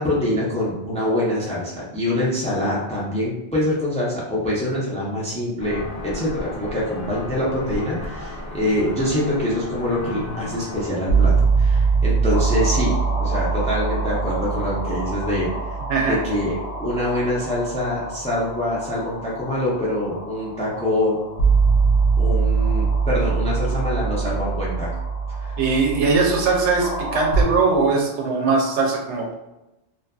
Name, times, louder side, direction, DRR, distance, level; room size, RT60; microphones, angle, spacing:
voice 1, 0.0-15.5 16.0-21.2 22.2-24.9, left 1 dB, 10° left, -6 dB, 0.4 m, -25 dB
sound 1, 5.6-10.9, left 2 dB, 50° left, 0.6 m, -34 dB
sound 2, 10.0-27.4, right 4 dB, 75° left, 0.9 m, -23 dB
voice 2, 25.6-29.3, right 4 dB, 85° right, 0 dB, 0.9 m, -20 dB
2.6 x 2.4 x 2.3 m, 0.93 s
omnidirectional pair, 1.1 m